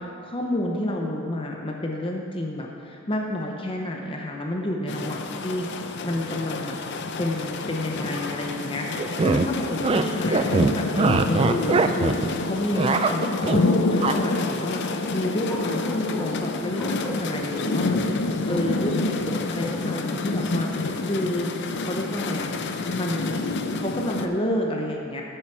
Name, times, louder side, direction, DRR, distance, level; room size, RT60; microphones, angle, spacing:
voice 1, 0.0-6.8 7.2-21.5 21.8-25.2, left 1 dB, 25° left, 0 dB, 0.7 m, -30 dB
sound 1, 4.9-24.3, left 3 dB, 55° left, 0.5 m, -28 dB
sound 2, 9.0-9.5 9.8-10.0 10.3-12.3 12.6-13.6 14.0-14.1, right 4 dB, 25° right, 0.3 m, -22 dB
Bark, 11.0-12.6 13.0-14.8 15.4-16.4 16.7-17.7 18.5-20.1, left 1 dB, 5° left, 1.3 m, -38 dB
7.8 x 7.7 x 6.2 m, 2.5 s
head